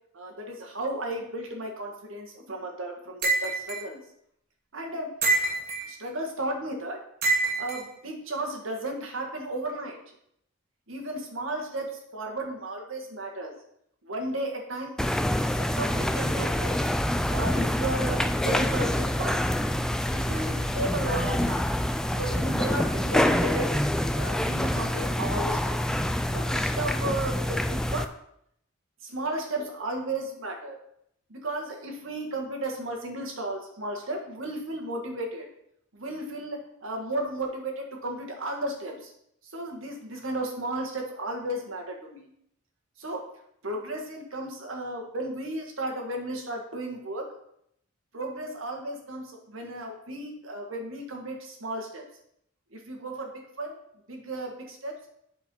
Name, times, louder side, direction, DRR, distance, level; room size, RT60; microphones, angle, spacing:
voice 1, 0.1-4.0 4.7-5.2 5.8-7.0 7.6-10.1 10.9-13.5 14.0-16.8 17.3-19.4 20.1-21.7 22.1-23.8 24.1-25.9 26.3-28.1 29.0-30.8 31.3-35.5 35.9-39.1 39.4-42.3 43.0-43.3 43.6-47.3 48.1-52.1 52.7-53.8 54.1-55.0, right 1 dB, 80° right, 2 dB, 1.6 m, -34 dB
sound 1, 3.2-3.8 5.2-5.9 7.2-7.8, right 3 dB, 50° right, 1.7 m, -25 dB
sound 2, 15.0-28.1, left 1 dB, 5° left, 0.3 m, -26 dB
8.3 x 4.6 x 5.4 m, 0.73 s
head